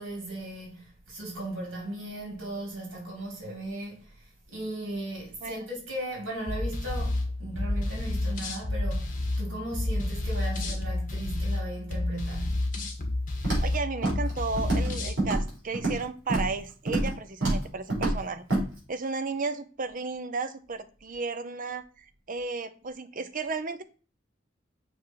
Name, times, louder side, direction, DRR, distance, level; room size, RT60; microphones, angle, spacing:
voice 1, 0.0-12.6, right 1 dB, 90° right, 3.1 m, -37 dB
sound 1, 6.5-15.2, left 2 dB, 45° left, 1.8 m, -30 dB
Walk footsteps, 13.4-13.7 14.0-14.3 14.6-14.9 15.2-16.0 16.3-16.5 16.9-17.1 17.4-17.6 17.9-18.2 18.5-18.6, right 2 dB, 70° right, 4.5 m, -26 dB
voice 2, 13.6-18.4 18.9-23.8, right 4 dB, 45° right, 0.7 m, -34 dB
6.9 x 4.9 x 4.6 m
head